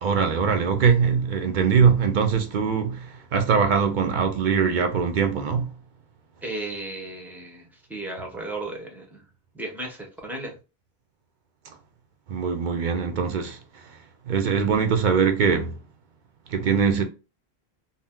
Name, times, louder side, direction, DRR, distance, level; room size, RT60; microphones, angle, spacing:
voice 1, 0.0-5.7 11.7-11.8 12.3-14.0 14.2-15.8 16.5-17.0, right 6 dB, 60° right, 0.6 m, -22 dB
voice 2, 6.4-9.3 9.5-10.6, right 2 dB, ahead, 0.5 m, -35 dB
2.7 x 2.0 x 3.4 m
omnidirectional pair, 1.1 m